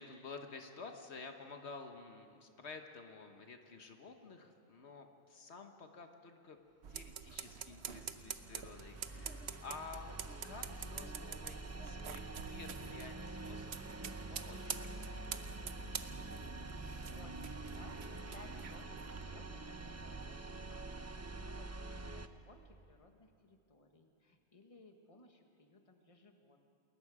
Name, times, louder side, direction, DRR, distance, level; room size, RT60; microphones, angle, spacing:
voice 1, 0.0-6.6 6.9-10.2 10.4-15.8, left 4 dB, 80° left, 5 dB, 1.5 m, -52 dB
sound 1, 6.8-20.4, right 7 dB, 75° right, 1.1 m, -48 dB
sound 2, 7.3-22.3, right 2 dB, 20° right, 0.5 m, -46 dB
voice 2, 17.1-26.6, left 2 dB, 30° left, 4 dB, 1.5 m, -61 dB
28.0 x 21.0 x 4.9 m, 2.4 s
omnidirectional pair, 1.1 m